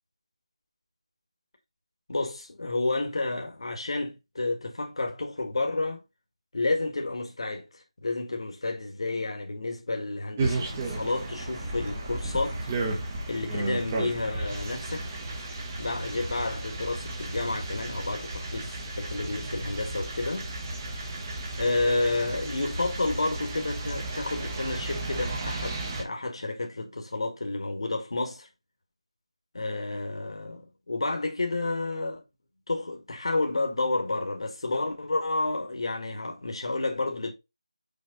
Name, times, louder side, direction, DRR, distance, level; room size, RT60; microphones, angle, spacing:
voice 1, 2.1-6.0 6.5-12.6 13.3-15.1 15.8-20.5 21.6-28.5 29.5-32.2 32.7-37.3, left 2 dB, 55° left, 2.0 m, -30 dB
sound 1, 10.4-26.0, right 2 dB, 20° right, 1.5 m, -33 dB
6.5 x 4.8 x 4.1 m
figure-of-eight pair, 170°, 3 cm